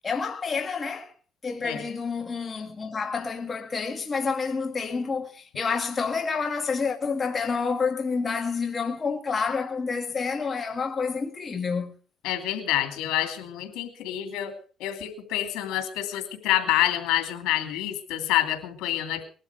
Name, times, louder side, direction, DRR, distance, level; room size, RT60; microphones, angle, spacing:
voice 1, 0.0-1.1 1.4-12.0, left 5 dB, 30° left, 2.0 m, -29 dB
voice 2, 12.2-14.5 14.8-19.2, left 13 dB, 85° left, 2.7 m, -27 dB
20.0 x 12.0 x 4.7 m
cardioid pair, 100°, 0 cm